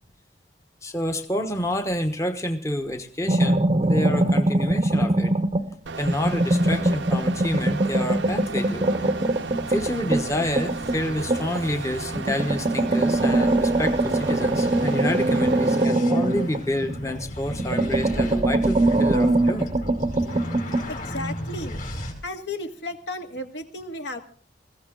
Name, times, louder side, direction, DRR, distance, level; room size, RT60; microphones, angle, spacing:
voice 1, 0.8-5.3 6.0-8.9 9.7-19.7, left 1 dB, 15° left, 7 dB, 1.1 m, -28 dB
sound 1, 3.3-5.7 6.1-11.7 12.1-17.2 17.5-20.9, right 1 dB, 30° right, 0.8 m, -22 dB
sound 2, 5.9-15.9, right 4 dB, 70° right, 0.7 m, -35 dB
sound 3, 7.8-22.1, equal, 45° left, 5.0 m, -37 dB
voice 2, 20.9-21.8 22.2-24.2, left 2 dB, 65° left, 6 dB, 2.1 m, -34 dB
21.0 x 16.0 x 3.8 m, 0.38 s
head